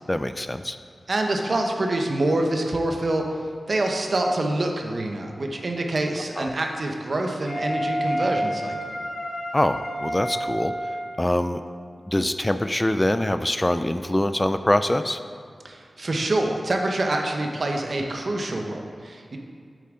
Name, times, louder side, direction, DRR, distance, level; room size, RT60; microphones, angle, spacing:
voice 1, 0.1-0.8 6.4-6.5 9.5-10.7 11.2-11.6 12.1-15.2, left 1 dB, 20° left, 10 dB, 0.3 m, -24 dB
voice 2, 1.1-3.2 3.7-8.7 15.6-19.4, right 2 dB, 60° right, 2 dB, 1.0 m, -26 dB
Wind instrument woodwind instrument, 7.5-11.2, equal, 70° left, 1.3 m, -29 dB
8.5 x 7.1 x 3.8 m, 2.3 s
cardioid pair, 55°, 0 cm